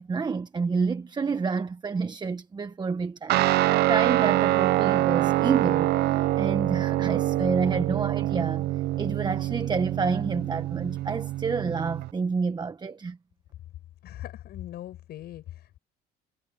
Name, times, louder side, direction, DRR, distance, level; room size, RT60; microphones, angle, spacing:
voice 1, 0.0-8.7 9.0-13.2, right 4 dB, 25° right, 1.2 m, -29 dB
Guitar, 3.3-12.1, right 16 dB, 75° right, 0.6 m, -25 dB
voice 2, 14.0-15.8, left 13 dB, 70° left, 7.6 m, -40 dB
cardioid pair, 110°, 17 cm